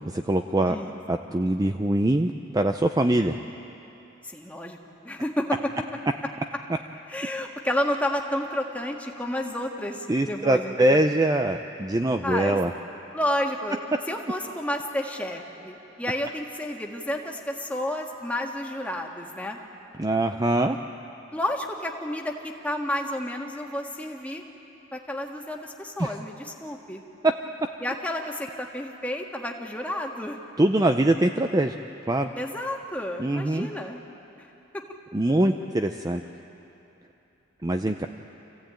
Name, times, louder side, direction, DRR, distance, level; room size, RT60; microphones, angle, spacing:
voice 1, 0.0-0.8 1.1-3.4 10.1-12.7 20.0-20.8 30.6-31.7 32.1-32.3 33.2-33.7 35.1-36.2 37.6-38.1, right 1 dB, 20° right, 6 dB, 0.5 m, -23 dB
voice 2, 0.7-1.0 4.2-4.8 5.1-5.7 7.1-11.0 12.2-12.6 13.1-13.8 14.1-19.6 21.3-24.4 24.9-27.0 27.8-30.4 32.4-34.0 34.4-34.5 34.7-34.8, left 1 dB, 5° left, 1 dB, 1.6 m, -31 dB
27.0 x 16.0 x 8.9 m, 2.9 s
head